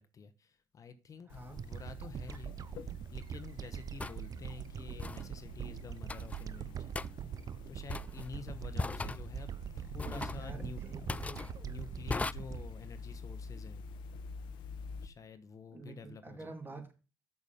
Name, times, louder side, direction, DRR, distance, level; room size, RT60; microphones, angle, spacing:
voice 1, 0.0-1.3 1.6-7.0 7.7-9.5 9.8-10.8 11.6-13.8 15.0-16.5, left 5 dB, 45° left, 1.0 m, -49 dB
sound 1, 1.3-15.1, left 4 dB, 80° left, 1.0 m, -48 dB
voice 2, 1.3-1.7 10.1-11.5 15.7-16.9, right 3 dB, 25° right, 2.7 m, -48 dB
sound 2, 1.6-14.0, right 9 dB, 50° right, 0.5 m, -43 dB
sound 3, 2.3-2.4 4.0-4.2 5.0-5.3 6.1-6.4 7.0-7.1 7.9-8.3 8.8-9.2 10.0-10.4 11.1-11.5 12.1-12.3, left 3 dB, 20° left, 0.3 m, -38 dB
6.9 x 6.7 x 5.1 m
cardioid pair, 80°, 8 cm